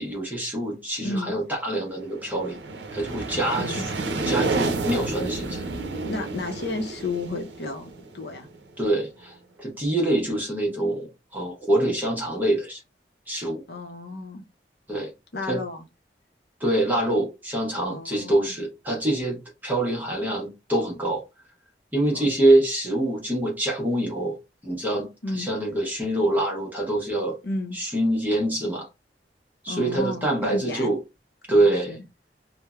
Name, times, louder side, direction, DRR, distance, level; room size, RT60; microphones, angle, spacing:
voice 1, 0.0-2.6 2.9-3.9 4.2-5.7 8.8-12.8 13.3-13.6 14.9-15.1 15.5-15.6 16.6-21.2 21.9-24.4 24.6-27.4 27.7-28.9 29.6-31.0 31.5-32.0, right 1 dB, 10° right, 0.7 m, -25 dB
voice 2, 1.0-1.3 3.6-3.8 6.0-8.5 13.7-14.4 15.3-15.8 17.9-18.4 22.1-22.3 25.2-25.5 27.4-27.8 29.7-30.9 31.5-31.6 31.9-32.0, left 2 dB, 70° left, 0.6 m, -32 dB
sound 1, 2.0-8.7, right 3 dB, 80° right, 0.5 m, -30 dB
3.2 x 2.0 x 2.3 m
head